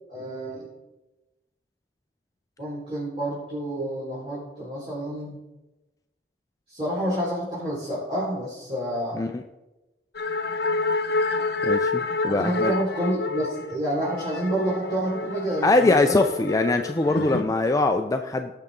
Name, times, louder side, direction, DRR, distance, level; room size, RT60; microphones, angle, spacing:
voice 1, 0.1-0.7 2.6-5.4 6.7-9.2 12.3-16.2, right 1 dB, 30° right, -9 dB, 4.3 m, -29 dB
sound 1, 10.1-17.4, left 3 dB, 65° left, 0.9 m, -28 dB
voice 2, 11.6-12.7 15.6-18.5, left 2 dB, 20° left, 6 dB, 0.4 m, -22 dB
18.0 x 6.6 x 3.7 m, 1.0 s
head